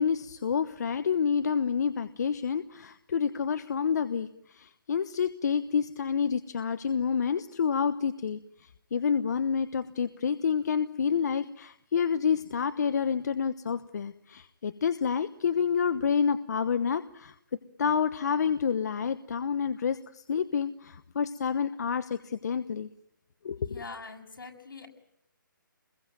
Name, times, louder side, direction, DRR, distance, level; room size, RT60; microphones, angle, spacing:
voice 1, 0.0-8.4 8.9-17.3 17.8-22.9 23.4-23.8, left 6 dB, 55° left, 11 dB, 1.1 m, -28 dB
voice 2, 23.6-24.9, left 4 dB, 80° left, 3 dB, 7.7 m, -44 dB
27.0 x 22.0 x 9.1 m, 0.75 s
hypercardioid pair, 165°, 11 cm